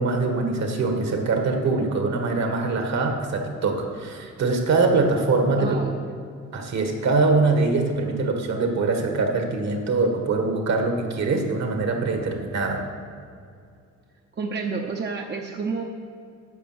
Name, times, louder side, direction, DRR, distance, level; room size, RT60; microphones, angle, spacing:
voice 1, 0.0-5.7 6.5-12.8, right 3 dB, 60° right, 3 dB, 1.8 m, -23 dB
voice 2, 5.6-6.0 14.4-15.8, right 4 dB, 35° right, 1 dB, 0.9 m, -29 dB
10.0 x 5.8 x 7.9 m, 2.3 s
cardioid pair, 90°, 30 cm